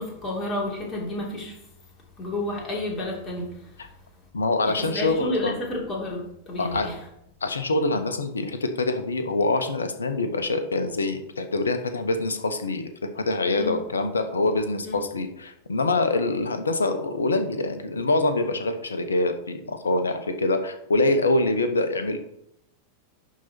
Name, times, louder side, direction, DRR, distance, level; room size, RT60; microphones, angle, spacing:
voice 1, 0.0-1.6 2.2-3.7 4.7-7.0 13.5-13.8 14.8-15.0, left 1 dB, 25° left, -2 dB, 3.3 m, -31 dB
voice 2, 4.3-5.6 6.6-6.9 7.4-12.9 13.2-22.2, left 2 dB, 75° left, 9 dB, 0.9 m, -25 dB
11.0 x 4.1 x 4.4 m, 0.79 s
figure-of-eight pair, 90°, 0 cm